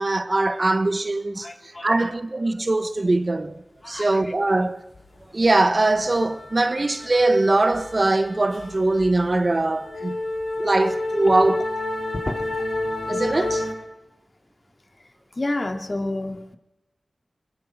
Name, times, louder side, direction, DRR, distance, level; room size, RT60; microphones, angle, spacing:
voice 1, 0.0-1.5 1.8-3.6 3.9-4.8 5.3-10.2 10.6-11.6 13.1-13.7, right 2 dB, 40° right, 1.6 m, -21 dB
voice 2, 1.4-1.9 3.8-4.1 12.1-12.4 15.4-16.6, left 2 dB, 40° left, 2.8 m, -29 dB
sound 1, 4.9-5.2 5.4-13.7, left 2 dB, 80° left, 7.5 m, -30 dB
25.0 x 23.0 x 6.1 m
wide cardioid pair, 60°, 0 cm